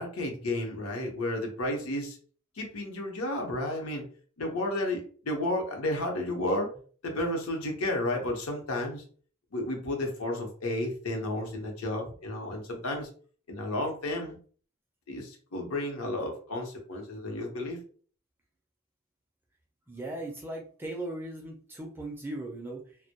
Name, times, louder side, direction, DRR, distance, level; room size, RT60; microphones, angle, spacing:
voice 1, 0.0-2.2 2.6-4.0 4.4-6.7 7.0-9.0 9.5-13.1 13.5-14.4 15.1-17.8, left 1 dB, 80° left, 2 dB, 0.7 m, -32 dB
voice 2, 19.9-23.0, right 1 dB, 10° right, 1 dB, 0.4 m, -38 dB
2.1 x 2.1 x 2.8 m, 0.43 s
head